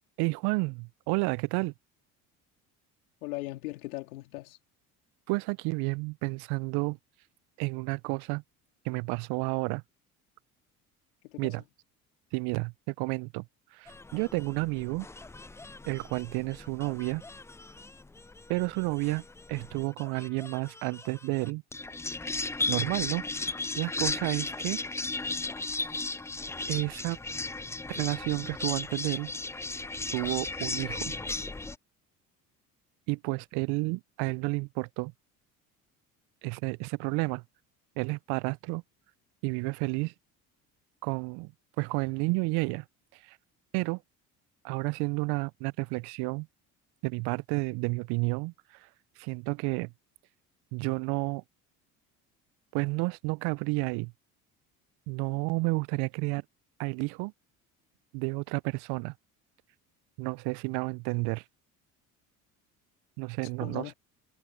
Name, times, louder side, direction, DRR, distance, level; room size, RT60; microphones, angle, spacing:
voice 1, 0.2-1.7 5.3-7.0 7.6-8.4 8.8-9.8 11.4-11.6 12.3-13.5 13.7-15.1 15.8-17.2 18.5-19.2 19.5-21.6 22.7-24.8 26.7-27.2 27.9-29.3 30.1-31.1 33.1-35.1 36.4-37.4 38.0-38.8 39.4-40.1 41.0-41.5 41.8-42.8 43.2-43.4 43.7-44.0 44.6-46.5 47.0-48.5 49.2-49.9 50.7-51.4 52.7-54.1 55.1-56.4 56.8-57.3 58.1-59.1 60.2-61.4 63.2-63.9, right 28 dB, 65° right, 0.6 m, -31 dB
voice 2, 3.2-4.6 11.2-11.6 63.6-63.9, left 20 dB, 80° left, 3.4 m, -39 dB
sound 1, 13.9-31.8, left 3 dB, 5° left, 0.4 m, -36 dB
hypercardioid pair, 65°, 42 cm